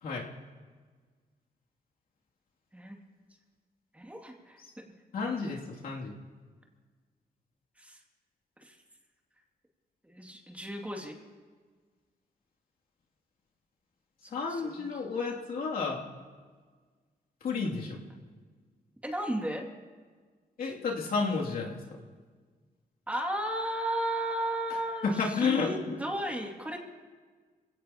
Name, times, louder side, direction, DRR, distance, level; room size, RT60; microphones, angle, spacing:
voice 1, 3.9-4.6 5.5-5.6 7.8-8.0 8.6-8.8 10.0-11.2 14.2-14.9 19.0-19.7 23.1-26.8, right 1 dB, 10° right, 1 dB, 2.4 m, -34 dB
voice 2, 5.1-6.1 14.3-16.0 17.4-18.0 20.6-21.8 25.0-26.0, left 4 dB, 70° left, -2 dB, 2.7 m, -31 dB
27.5 x 17.0 x 2.9 m, 1.5 s
cardioid pair, 105°, 16 cm